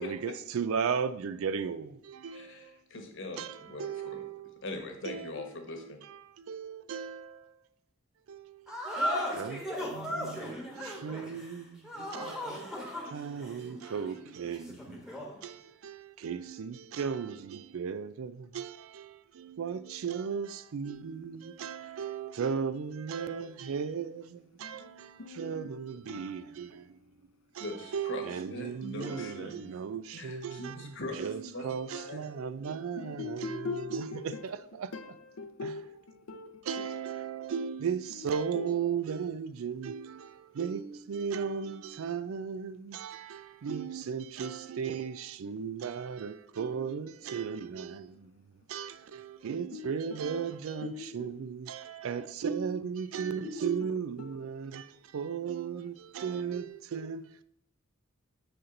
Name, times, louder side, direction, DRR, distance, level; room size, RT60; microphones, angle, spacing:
voice 1, 0.0-2.7 3.4-4.6 5.1-5.3 5.8-5.9 6.4-7.4 8.3-8.6 9.4-9.6 9.9-15.0 15.4-26.9 27.6-27.7 27.9-30.9 31.2-34.9 35.6-35.7 36.7-48.3 48.7-54.9 55.1-57.4, right 6 dB, 70° right, 0.4 m, -36 dB
voice 2, 2.3-4.2 4.6-6.0 27.6-29.7 30.1-32.4, left 2 dB, 60° left, 1.1 m, -41 dB
sound 1, 8.7-15.4, equal, 5° right, 1.2 m, -37 dB
voice 3, 24.6-27.5 33.0-34.6 34.9-37.1 38.1-38.8 47.9-48.2 49.7-50.3 50.8-51.4 53.4-54.9, left 4 dB, 90° left, 0.6 m, -43 dB
6.5 x 4.3 x 3.8 m
head